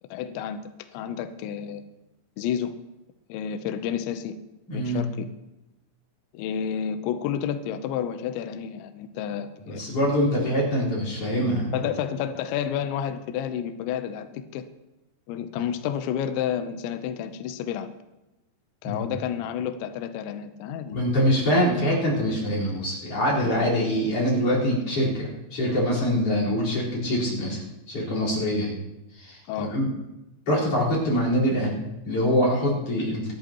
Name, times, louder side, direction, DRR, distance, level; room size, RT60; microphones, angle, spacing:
voice 1, 0.1-0.6 0.9-1.8 2.4-2.7 3.3-4.3 4.7-5.3 6.3-9.8 11.7-14.6 15.3-17.9 18.8-21.3 23.4-23.6 29.5-29.7, left 9 dB, 80° left, 8 dB, 2.7 m, -30 dB
voice 2, 4.7-5.0 9.7-11.7 18.8-19.0 20.9-28.7 29.2-29.9 30.5-33.3, equal, 30° left, -5 dB, 4.9 m, -24 dB
25.5 x 11.0 x 3.0 m, 0.97 s
omnidirectional pair, 6.0 m